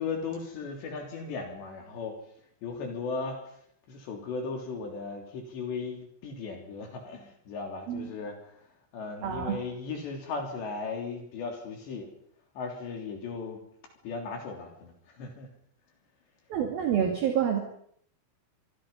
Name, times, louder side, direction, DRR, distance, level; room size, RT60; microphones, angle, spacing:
voice 1, 0.0-2.2 2.6-3.4 3.9-8.4 8.9-12.1 12.6-13.6 14.0-15.5, left 4 dB, 60° left, 3 dB, 5.4 m, -36 dB
voice 2, 9.2-9.6 16.5-17.6, right 8 dB, 55° right, 3 dB, 3.7 m, -27 dB
26.0 x 23.5 x 5.5 m, 0.65 s
omnidirectional pair, 5.8 m